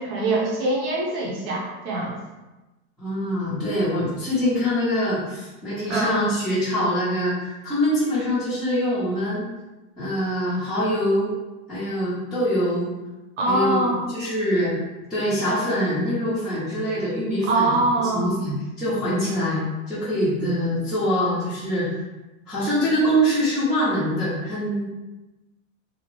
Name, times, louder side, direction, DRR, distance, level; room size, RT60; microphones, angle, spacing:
voice 1, 0.0-2.2 5.9-6.2 13.4-14.0 17.5-18.3, right 2 dB, 60° right, -2 dB, 1.0 m, -23 dB
voice 2, 3.0-9.5 10.0-11.3 11.7-12.9 13.5-14.7 15.1-22.0 22.5-24.9, equal, ahead, -13 dB, 0.6 m, -24 dB
2.8 x 2.0 x 3.0 m, 1.1 s
supercardioid pair, 140°, 40 cm